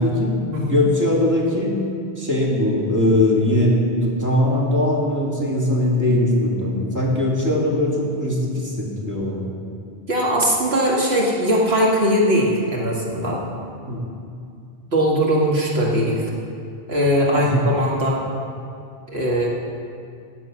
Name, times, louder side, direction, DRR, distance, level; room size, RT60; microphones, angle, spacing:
voice 1, 0.0-0.3 0.6-1.7 2.2-9.4 13.9-14.1 17.3-17.7, left 1 dB, 15° right, -4 dB, 2.6 m, -20 dB
voice 2, 10.1-13.4 14.9-16.3 16.9-18.2 19.1-19.5, equal, 70° right, -3 dB, 2.0 m, -20 dB
14.5 x 9.6 x 6.1 m, 2.4 s
omnidirectional pair, 1.1 m